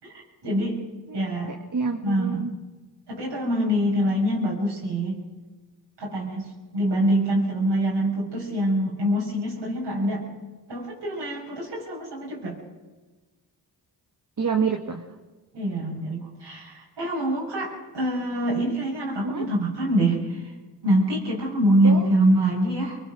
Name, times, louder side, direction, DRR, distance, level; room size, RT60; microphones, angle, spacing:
voice 1, 0.0-0.8 1.1-1.5 2.0-2.4 3.1-5.2 6.0-10.2 10.7-12.5 15.5-20.4 20.8-23.0, right 1 dB, 75° right, -4 dB, 6.0 m, -25 dB
voice 2, 1.5-2.5 14.4-15.0 19.2-19.5 21.8-22.1, right 5 dB, 45° right, 4 dB, 1.9 m, -27 dB
22.5 x 20.5 x 6.3 m, 1.3 s
cardioid pair, 50°, 42 cm